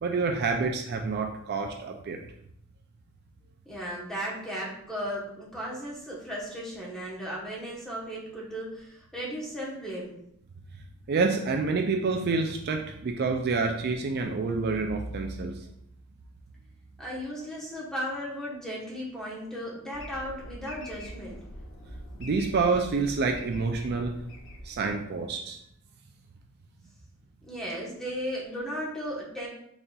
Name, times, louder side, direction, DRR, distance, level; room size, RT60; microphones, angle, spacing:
voice 1, 0.0-2.2 11.1-15.6 22.2-24.1 24.6-25.6, right 4 dB, 50° right, 4 dB, 0.4 m, -28 dB
voice 2, 3.6-10.1 17.0-21.5 27.4-29.5, equal, 5° left, -5 dB, 1.1 m, -36 dB
sound 1, 19.9-25.3, equal, 65° left, 0.7 m, -44 dB
4.0 x 3.9 x 2.3 m, 0.73 s
head